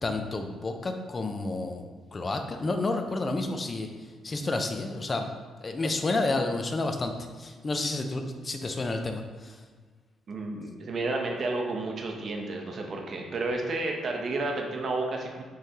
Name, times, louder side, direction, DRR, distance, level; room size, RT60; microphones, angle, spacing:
voice 1, 0.0-1.8 2.1-3.9 4.2-5.3 5.6-7.1 7.4-9.6, left 2 dB, 30° left, 5 dB, 0.5 m, -30 dB
voice 2, 10.3-15.4, right 2 dB, 50° right, 1 dB, 0.7 m, -31 dB
5.5 x 3.2 x 2.8 m, 1.5 s
cardioid pair, 90°, 0 cm